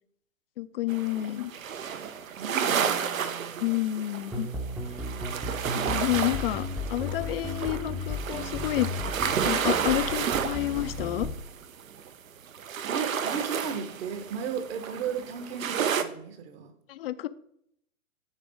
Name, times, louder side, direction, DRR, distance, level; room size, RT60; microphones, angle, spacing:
voice 1, 0.6-1.5 3.0-3.1 3.6-4.5 5.7-6.6 6.9-8.9 9.4-11.3 16.9-17.3, left 14 dB, 45° left, 15 dB, 0.5 m, -29 dB
sound 1, 0.9-12.1 12.5-16.0, right 7 dB, 70° right, 0.8 m, -31 dB
voice 2, 2.4-3.8 12.9-16.7, right 7 dB, 45° right, 9 dB, 1.3 m, -35 dB
sound 2, 4.3-11.3, left 1 dB, 5° right, 0.6 m, -35 dB
9.7 x 3.4 x 5.0 m, 0.72 s
figure-of-eight pair, 115°, 42 cm